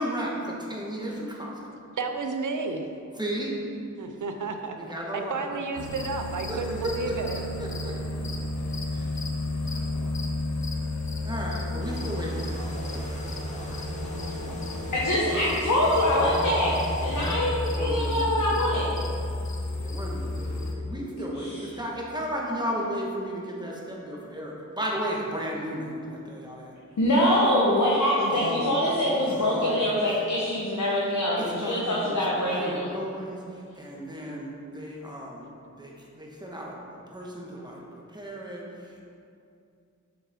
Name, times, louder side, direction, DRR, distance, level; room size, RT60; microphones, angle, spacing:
voice 1, 0.0-1.7 3.1-3.5 4.7-5.4 6.5-8.2 8.9-9.1 9.5-10.2 11.2-13.2 13.7-14.9 15.5-15.7 17.7-18.7 19.8-26.7 28.2-28.7 29.1-29.8 31.4-35.5 35.8-39.0, equal, 15° right, -3 dB, 1.4 m, -35 dB
voice 2, 2.0-2.9 4.0-4.8 5.1-7.4, right 4 dB, 85° right, 5 dB, 0.7 m, -31 dB
sound 1, 5.8-20.8, left 1 dB, 65° left, 0.8 m, -32 dB
sound 2, 11.8-17.3, left 1 dB, 25° left, 1.3 m, -38 dB
voice 3, 14.9-16.7 17.0-18.9 21.2-21.6 27.0-32.9, left 1 dB, 85° left, -5 dB, 1.1 m, -24 dB
7.0 x 6.9 x 3.7 m, 2.4 s
wide cardioid pair, 85°, 30 cm